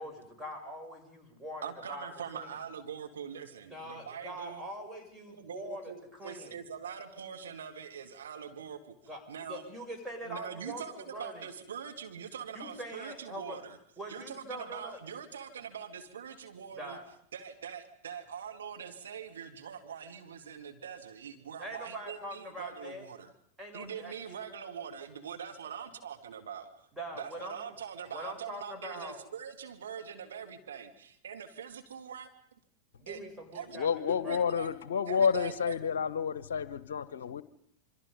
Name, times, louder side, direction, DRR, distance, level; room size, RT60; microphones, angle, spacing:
voice 1, 0.0-2.6 3.7-6.5 9.1-11.5 12.5-13.6 14.0-15.0 16.7-17.0 21.6-23.1 23.6-24.4 26.9-27.6 28.1-29.2 33.0-34.5, equal, 10° right, 2 dB, 6.8 m, -43 dB
voice 2, 1.6-4.6 5.3-8.9 9.3-9.6 10.3-10.9 11.2-13.8 14.1-17.0 17.3-23.3 23.7-26.9 27.2-32.3 33.1-33.2 33.5-33.8 34.3-34.7 35.1-35.7, right 7 dB, 65° right, 5 dB, 2.2 m, -43 dB
voice 3, 33.7-37.4, left 6 dB, 65° left, 17 dB, 0.9 m, -30 dB
27.0 x 25.0 x 5.4 m, 0.66 s
figure-of-eight pair, 90°, 0 cm